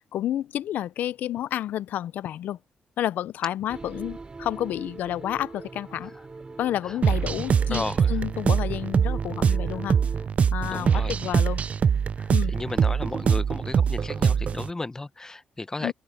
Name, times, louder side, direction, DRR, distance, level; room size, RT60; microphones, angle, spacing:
voice 1, 0.1-2.6 3.0-6.1 6.6-10.0 10.5-11.6 12.3-12.5 15.8-15.9, left 12 dB, 85° left, 0.4 m, -30 dB
sound 1, 3.7-10.3, right 3 dB, 30° right, 2.8 m, -42 dB
sound 2, 7.0-14.7, right 7 dB, 50° right, 0.3 m, -23 dB
voice 2, 7.3-8.2 9.5-9.6 10.6-11.1 12.2-15.9, left 2 dB, 20° left, 0.8 m, -35 dB
open air
cardioid pair, 80°, 3 cm